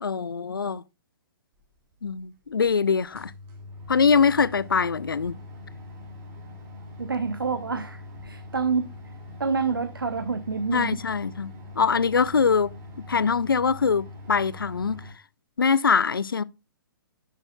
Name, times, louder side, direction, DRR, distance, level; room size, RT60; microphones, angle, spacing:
voice 1, 0.0-0.8 2.0-3.3 3.9-5.4 10.7-12.7 13.1-15.0 15.6-16.4, left 5 dB, 75° left, 0.5 m, -23 dB
sound 1, 1.9-2.0 2.6-2.7 3.0-15.1, left 2 dB, 25° right, 2.5 m, -43 dB
voice 2, 7.0-8.9 9.4-11.0, right 5 dB, 75° right, 0.9 m, -27 dB
10.5 x 6.5 x 2.3 m
figure-of-eight pair, 125°, 12 cm